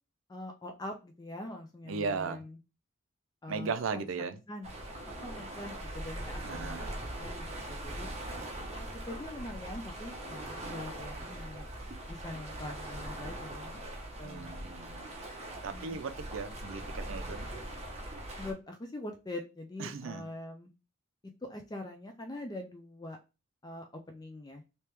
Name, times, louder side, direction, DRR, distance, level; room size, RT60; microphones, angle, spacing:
voice 1, 0.3-2.6 3.4-4.7 5.2-8.1 8.7-11.7 12.1-13.7 14.2-14.5 15.7-16.0 18.4-20.7 21.4-23.2 23.6-24.6, left 1 dB, 20° left, 0.4 m, -43 dB
voice 2, 1.9-2.4 3.5-4.4 6.4-6.9 14.2-15.1 15.6-17.5 19.8-20.3, right 5 dB, 70° right, 0.5 m, -37 dB
sound 1, 4.6-18.5, right 1 dB, 30° right, 0.7 m, -41 dB
3.0 x 2.8 x 3.3 m
head